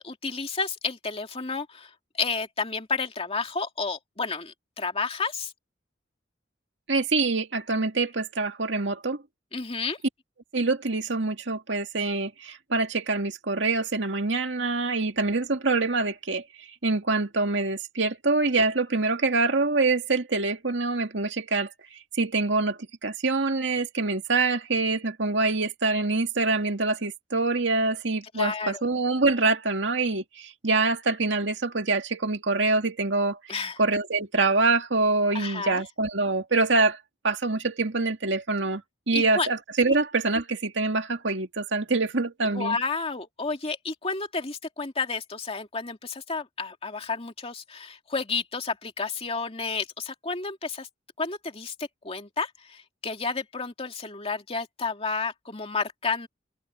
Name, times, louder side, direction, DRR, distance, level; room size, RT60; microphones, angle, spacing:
voice 1, 0.0-5.5 9.5-10.0 28.3-28.8 33.5-33.8 35.3-35.8 39.1-39.5 42.5-50.9 51.2-56.3, left 4 dB, 35° left, 2.4 m, -31 dB
voice 2, 6.9-9.2 10.5-16.4 16.8-33.4 33.8-37.0 37.2-38.8 39.1-42.8, right 3 dB, 80° right, 2.3 m, -25 dB
head